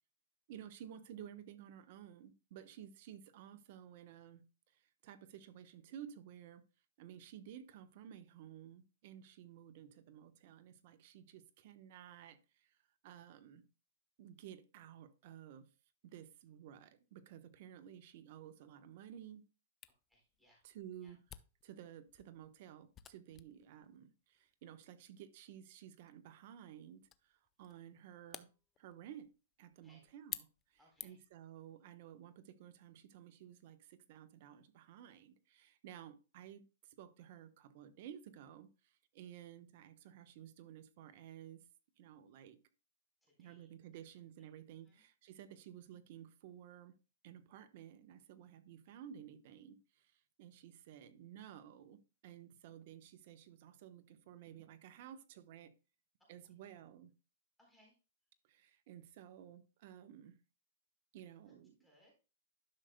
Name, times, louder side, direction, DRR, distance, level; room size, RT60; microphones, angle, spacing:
voice 1, 0.5-4.4 4.7-6.6 7.0-12.8 13.0-13.6 14.2-15.7 16.0-19.4 20.6-21.2 21.6-28.5 28.8-29.3 29.6-41.6 42.0-42.6 43.4-46.9 47.2-55.7 56.3-57.1 58.5-60.4 61.1-61.8, right 10 dB, 50° right, 1.0 m, -54 dB
Camera, 19.8-31.4, left 10 dB, 20° left, 0.5 m, -55 dB
voice 2, 20.1-20.6 21.0-21.2 29.8-30.2 30.8-31.2 43.2-44.0 44.4-45.0 56.4-56.5 57.6-58.0 61.5-61.6 61.8-62.1, equal, ahead, 3.9 m, -71 dB
11.5 x 6.4 x 2.2 m
hypercardioid pair, 145°, 0 cm